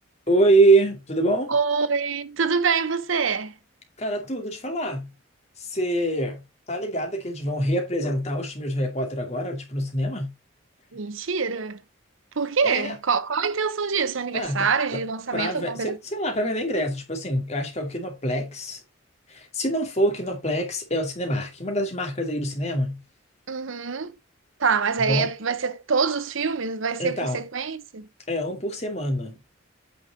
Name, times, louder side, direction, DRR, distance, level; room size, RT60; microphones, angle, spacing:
voice 1, 0.3-1.5 4.0-5.1 5.6-6.4 6.7-10.3 12.6-12.9 14.3-15.0 15.3-18.8 19.3-23.0 25.1-25.3 27.0-27.4 28.3-29.4, right 1 dB, 30° left, 2.5 m, -25 dB
voice 2, 1.5-3.5 10.9-11.8 12.4-16.0 23.5-24.1 24.6-28.1, right 5 dB, 75° right, 0.8 m, -25 dB
8.8 x 5.2 x 4.0 m
head